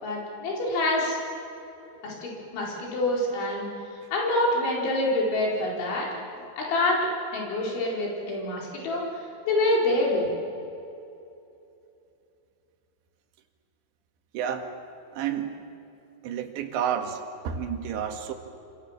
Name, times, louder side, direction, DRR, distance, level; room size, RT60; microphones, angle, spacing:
voice 1, 0.0-1.2 2.0-3.7 4.1-6.1 6.6-7.0 7.3-9.1 9.5-10.3, left 1 dB, 90° left, -3 dB, 6.9 m, -26 dB
voice 2, 14.3-14.7 15.1-15.5 16.2-18.3, right 8 dB, 75° right, 5 dB, 4.0 m, -30 dB
28.0 x 27.0 x 7.4 m, 2.8 s
omnidirectional pair, 5.2 m